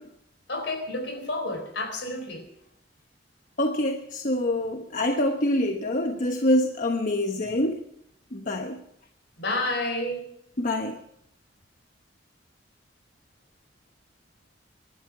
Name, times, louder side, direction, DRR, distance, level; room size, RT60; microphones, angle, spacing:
voice 1, 0.5-2.5 9.4-10.3, left 2 dB, 70° left, 6 dB, 4.3 m, -30 dB
voice 2, 3.6-7.8 8.3-8.8 10.6-11.0, left 1 dB, 45° left, 4 dB, 1.1 m, -25 dB
24.0 x 12.0 x 4.9 m, 0.74 s
head